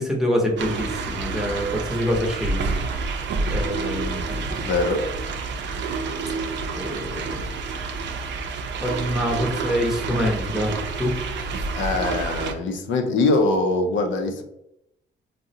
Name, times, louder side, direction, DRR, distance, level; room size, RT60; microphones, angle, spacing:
voice 1, 0.0-3.0 3.5-4.6 6.7-7.4 8.8-11.1, equal, ahead, -1 dB, 0.8 m, -26 dB
sound 1, 0.6-12.5, right 4 dB, 65° right, 0.5 m, -29 dB
voice 2, 4.6-5.0 11.8-14.4, left 2 dB, 70° left, 5 dB, 0.5 m, -22 dB
3.6 x 2.1 x 2.7 m, 0.83 s
cardioid pair, 90°, 20 cm